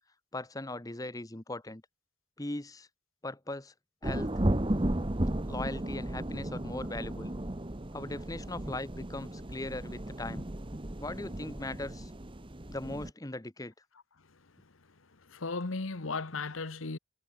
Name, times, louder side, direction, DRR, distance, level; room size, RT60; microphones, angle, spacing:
voice 1, 0.3-1.8 2.4-2.9 3.2-3.7 4.0-4.3 5.5-7.3 7.9-10.5 11.0-12.1 12.7-13.7, left 2 dB, 15° left, 1.0 m, -39 dB
sound 1, 4.0-13.1, right 1 dB, 25° right, 1.0 m, -34 dB
voice 2, 15.1-17.0, left 3 dB, 80° left, 1.2 m, -36 dB
head